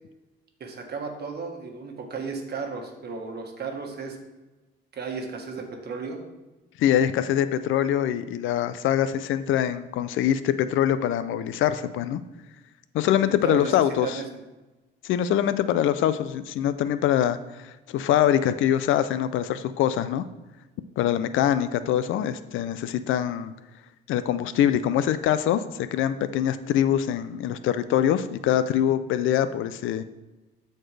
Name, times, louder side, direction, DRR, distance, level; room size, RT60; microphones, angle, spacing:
voice 1, 0.6-4.2 4.9-6.2 13.4-14.4, right 5 dB, 55° right, 3 dB, 1.4 m, -34 dB
voice 2, 6.8-12.2 12.9-14.2 15.0-20.2 21.0-23.5 24.1-30.0, left 10 dB, 80° left, 13 dB, 0.5 m, -24 dB
12.5 x 4.4 x 3.3 m, 1.1 s
cardioid pair, 90°, 20 cm